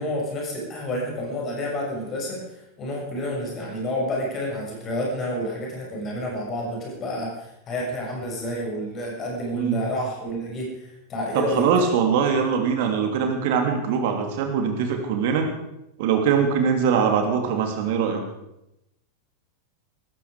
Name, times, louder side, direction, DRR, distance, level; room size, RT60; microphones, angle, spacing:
voice 1, 0.0-2.4 2.8-11.7, left 1 dB, 30° left, -2 dB, 6.8 m, -29 dB
voice 2, 11.3-15.5 16.0-18.2, right 6 dB, 50° right, 4 dB, 3.1 m, -22 dB
18.5 x 15.0 x 5.1 m, 0.87 s
figure-of-eight pair, 90°, 0 cm